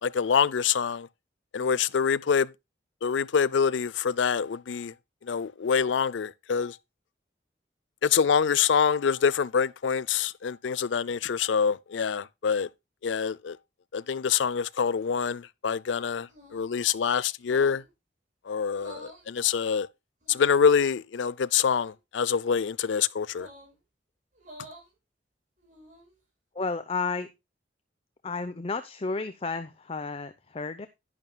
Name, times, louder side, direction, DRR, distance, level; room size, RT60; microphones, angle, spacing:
voice 1, 0.0-1.1 1.5-2.5 3.0-4.9 5.2-6.8 8.0-12.7 13.0-13.6 13.9-17.8 18.5-19.9 20.3-23.5, left 6 dB, 85° left, 0.5 m, -25 dB
sound 1, 16.3-16.8 17.4-17.9 18.7-19.3 20.2-20.8 21.6-21.9 23.3-23.7 24.3-24.9 25.6-26.1, right 1 dB, 45° right, 6.4 m, -49 dB
voice 2, 26.5-27.3 28.2-30.9, left 4 dB, 30° left, 0.6 m, -32 dB
11.0 x 11.0 x 2.2 m
head